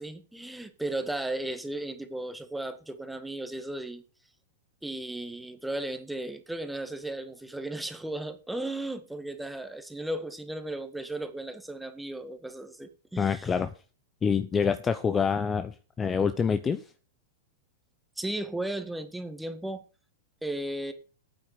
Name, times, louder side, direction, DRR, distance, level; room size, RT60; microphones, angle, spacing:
voice 1, 0.0-4.0 4.8-13.5 18.2-19.8 20.4-20.9, right 1 dB, 5° right, 8 dB, 1.9 m, -35 dB
voice 2, 13.2-13.7 14.2-16.8, left 6 dB, 20° left, 12 dB, 0.8 m, -26 dB
9.0 x 8.9 x 6.6 m, 0.36 s
hypercardioid pair, 105°, 0 cm